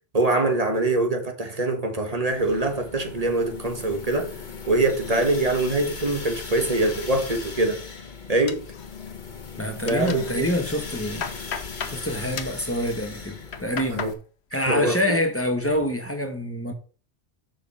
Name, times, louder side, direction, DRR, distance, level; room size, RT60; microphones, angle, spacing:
voice 1, 0.1-4.3 4.7-7.8 8.3-8.6 9.8-10.5 13.9-14.1 14.5-15.2, right 2 dB, 35° right, 1.4 m, -24 dB
sound 1, 2.2-14.1, left 5 dB, 45° left, 1.3 m, -38 dB
sound 2, 8.5-9.3 9.6-10.3 10.8-12.0 12.4-12.6 13.3-14.2 14.5-15.0 15.4-15.9, left 6 dB, 70° left, 1.1 m, -36 dB
voice 2, 9.6-11.3 11.8-14.1 14.5-16.7, left 1 dB, 10° left, 1.3 m, -26 dB
7.3 x 5.2 x 5.5 m
omnidirectional pair, 1.2 m